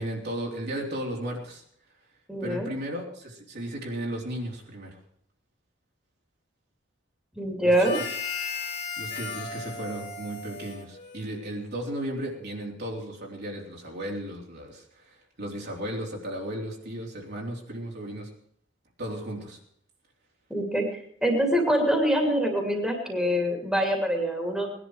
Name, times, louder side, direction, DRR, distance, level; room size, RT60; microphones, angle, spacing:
voice 1, 0.0-1.6 2.4-5.0 7.6-7.9 9.0-18.3 19.0-19.6, right 1 dB, 55° right, -1 dB, 3.6 m, -35 dB
voice 2, 2.3-2.7 7.4-8.0 20.5-24.7, equal, 5° right, 1 dB, 2.7 m, -25 dB
Harmonica, 7.7-11.5, left 5 dB, 55° left, 3.1 m, -35 dB
19.5 x 11.0 x 4.9 m, 0.64 s
head